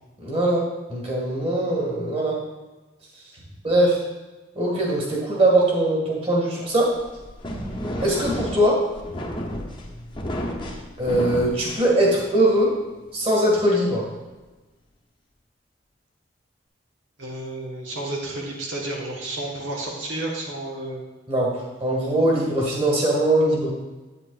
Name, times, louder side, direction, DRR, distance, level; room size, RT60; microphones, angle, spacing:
voice 1, 0.2-2.4 3.6-4.0 4.6-7.0 8.0-8.8 11.0-12.7 13.1-14.1 21.3-23.7, right 1 dB, 30° right, -3 dB, 2.0 m, -21 dB
sound 1, 6.8-12.5, equal, 25° left, 0.8 m, -32 dB
voice 2, 17.2-21.0, right 1 dB, 85° right, -2 dB, 1.4 m, -31 dB
9.9 x 8.7 x 2.5 m, 1.2 s
head